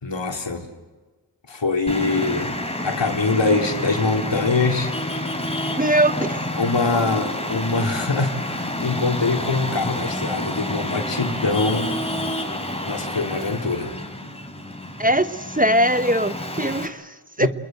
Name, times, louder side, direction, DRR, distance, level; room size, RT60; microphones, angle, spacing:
voice 1, 0.0-0.7 1.5-2.5 2.8-4.9 6.6-11.9 12.2-12.5 12.9-13.9 17.4-17.5, left 3 dB, 75° left, 3 dB, 3.7 m, -23 dB
Traffic noise roadway noise, 1.9-16.9, left 1 dB, 15° left, 3.6 m, -29 dB
voice 2, 5.8-6.4 15.0-17.5, right 1 dB, 20° right, 11 dB, 1.1 m, -21 dB
29.5 x 21.5 x 7.8 m, 1.3 s
wide cardioid pair, 70°, 44 cm